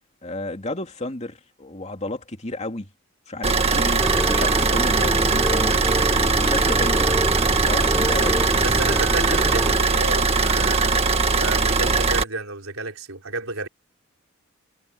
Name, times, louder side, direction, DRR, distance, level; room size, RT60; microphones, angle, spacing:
voice 1, 0.2-2.9 3.3-5.8 6.4-7.1 7.6-8.5, left 2 dB, 30° left, 2.7 m, -32 dB
Car / Idling, 3.4-12.2, right 4 dB, 30° right, 1.8 m, -20 dB
voice 2, 3.5-3.8 8.6-13.7, right 3 dB, 85° right, 3.8 m, -31 dB
sound 1, 4.0-9.8, equal, ahead, 3.2 m, -28 dB
head